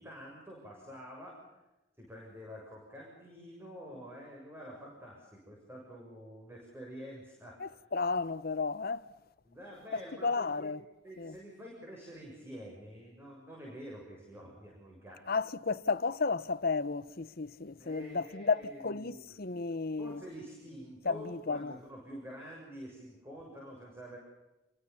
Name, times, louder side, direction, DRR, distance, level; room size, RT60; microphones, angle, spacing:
voice 1, 0.0-1.4 2.0-7.8 9.5-10.7 11.0-15.2 17.8-19.3 20.0-24.2, equal, 15° right, 7.0 m, -48 dB
voice 2, 7.6-9.1 9.9-10.8 11.2-11.3 15.3-20.2 21.0-21.8, left 4 dB, 55° left, 1.0 m, -33 dB
28.5 x 23.5 x 7.1 m
head